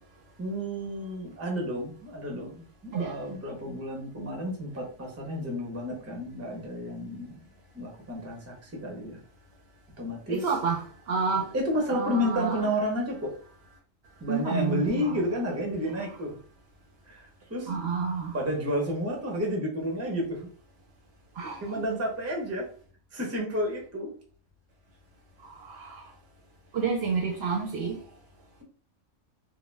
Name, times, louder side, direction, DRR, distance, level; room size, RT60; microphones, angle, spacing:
voice 1, 0.4-7.4 7.7-9.2 10.0-10.4 11.5-13.3 14.2-16.4 17.1-17.7 18.3-20.5 21.6-22.7 23.1-24.1, equal, 20° right, 0.5 m, -31 dB
voice 2, 2.9-3.2 10.3-11.5 11.9-12.7 14.3-15.2 16.0-16.1 17.7-18.4 21.4-21.8 25.4-26.1 26.7-28.0, right 5 dB, 65° right, 0.7 m, -30 dB
2.4 x 2.1 x 3.2 m
omnidirectional pair, 1.3 m